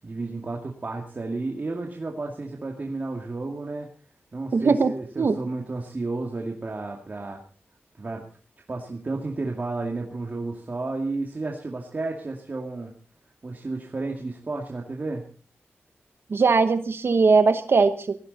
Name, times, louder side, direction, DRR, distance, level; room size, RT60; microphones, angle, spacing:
voice 1, 0.0-3.9 4.3-7.4 8.0-8.3 8.7-12.9 13.4-15.2, right 3 dB, 40° right, 1 dB, 2.2 m, -32 dB
voice 2, 4.5-4.9 5.2-5.4 16.3-18.2, right 4 dB, 65° right, 10 dB, 1.0 m, -20 dB
18.5 x 15.0 x 4.1 m, 0.40 s
wide cardioid pair, 95°, 4 cm